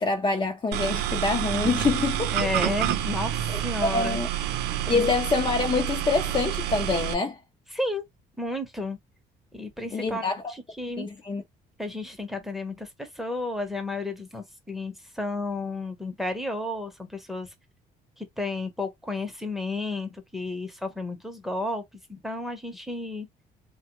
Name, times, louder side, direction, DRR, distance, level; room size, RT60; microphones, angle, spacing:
voice 1, 0.0-2.3 2.6-2.7 3.5-4.3 4.9-7.4 9.9-10.5 11.0-11.4, left 4 dB, 30° left, 0.7 m, -26 dB
sound 1, 0.7-7.1, right 12 dB, 85° right, 0.6 m, -28 dB
voice 2, 2.3-4.2 4.9-5.0 7.7-8.0 8.4-9.0 9.5-11.1 11.8-17.5 18.2-21.8 22.1-23.3, left 2 dB, ahead, 0.9 m, -32 dB
3.3 x 2.3 x 3.0 m
cardioid pair, 110°, 17 cm